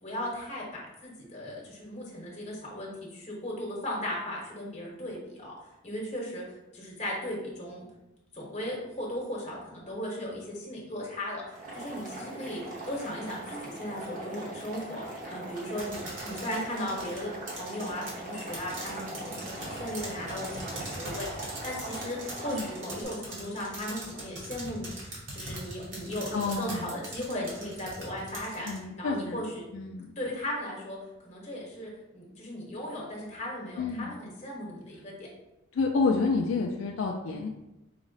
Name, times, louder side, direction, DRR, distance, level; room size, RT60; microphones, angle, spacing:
voice 1, 0.0-6.4 6.7-7.8 8.3-29.6 30.2-31.0 31.2-35.3, left 1 dB, 35° left, -4 dB, 1.1 m, -37 dB
Boiling, 11.5-23.0, right 1 dB, 40° right, 0.9 m, -41 dB
sound 1, 15.8-28.8, right 2 dB, 70° right, 1.3 m, -41 dB
voice 2, 22.5-23.0 26.3-26.9 28.7-29.4 29.7-30.1 33.8-34.1 35.7-37.5, left 4 dB, 70° left, 1 dB, 0.4 m, -29 dB
4.8 x 2.0 x 3.9 m, 0.93 s
head